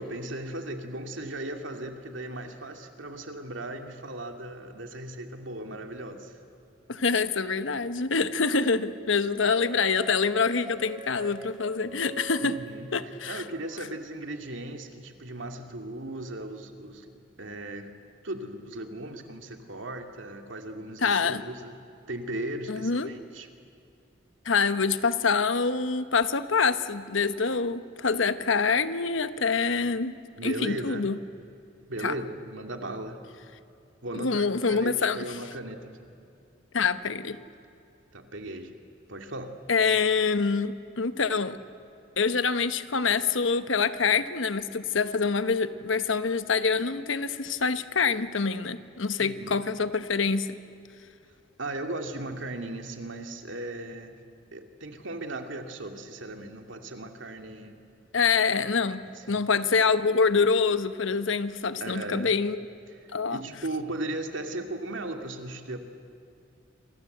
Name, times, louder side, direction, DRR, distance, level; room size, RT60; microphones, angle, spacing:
voice 1, 0.0-6.4 12.4-17.1 17.4-17.9 18.2-21.8 22.1-23.5 30.4-31.1 31.9-33.2 34.0-35.9 38.1-38.7 39.1-39.5 49.2-49.6 51.6-54.2 54.5-57.8 58.9-59.4 61.8-62.3 63.0-65.8, right 1 dB, 75° right, 5 dB, 2.4 m, -37 dB
voice 2, 6.9-12.6 12.9-13.4 21.0-21.4 22.7-23.1 24.4-30.1 30.4-31.2 32.0-32.1 34.1-35.4 36.7-37.4 39.7-41.6 42.2-50.6 58.1-62.7 63.1-63.4, left 5 dB, 80° left, 12 dB, 1.1 m, -26 dB
sound 1, 9.4-13.9, right 2 dB, 20° right, 1.0 m, -44 dB
28.5 x 24.5 x 8.0 m, 2.6 s
head